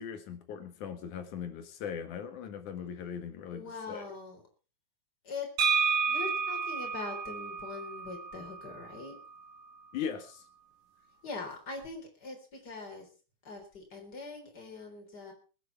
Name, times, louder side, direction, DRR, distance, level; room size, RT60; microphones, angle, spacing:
voice 1, 0.0-4.0 9.9-10.4, left 7 dB, 85° left, 8 dB, 3.1 m, -39 dB
voice 2, 3.5-4.4 5.2-9.2 11.2-13.1 13.4-15.3, left 4 dB, 35° left, 3 dB, 4.3 m, -42 dB
sound 1, 5.6-9.4, right 5 dB, 85° right, 3.3 m, -31 dB
21.0 x 9.6 x 4.6 m, 0.35 s
omnidirectional pair, 3.4 m